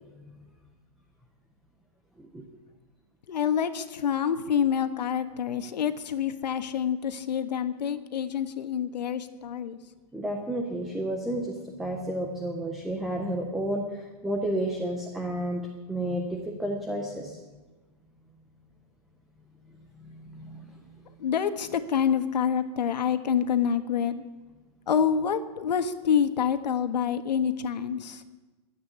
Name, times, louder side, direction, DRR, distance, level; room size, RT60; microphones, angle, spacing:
voice 1, 3.3-9.8 21.2-24.2 24.9-28.2, left 8 dB, 80° left, 9 dB, 1.4 m, -27 dB
voice 2, 10.1-17.4 19.7-20.7, right 1 dB, ahead, 1 dB, 0.4 m, -31 dB
13.5 x 8.9 x 9.7 m, 1.2 s
hypercardioid pair, 175°, 21 cm